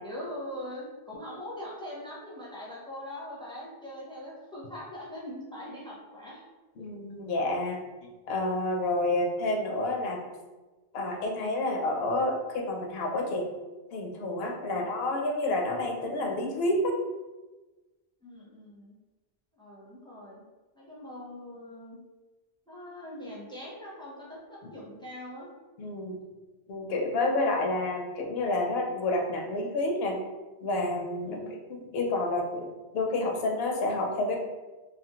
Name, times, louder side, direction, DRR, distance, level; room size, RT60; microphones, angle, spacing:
voice 1, 0.0-6.4 14.6-14.8 18.2-19.0 19.5-20.4 20.7-22.0 22.7-25.5 31.2-31.5, left 1 dB, 5° left, -5 dB, 0.5 m, -42 dB
voice 2, 6.8-7.8 8.3-10.2 10.9-13.5 13.9-17.0 25.8-26.2 26.7-30.2 30.6-34.4, left 2 dB, 75° left, 2 dB, 0.8 m, -29 dB
2.6 x 2.4 x 2.8 m, 1.2 s
omnidirectional pair, 1.0 m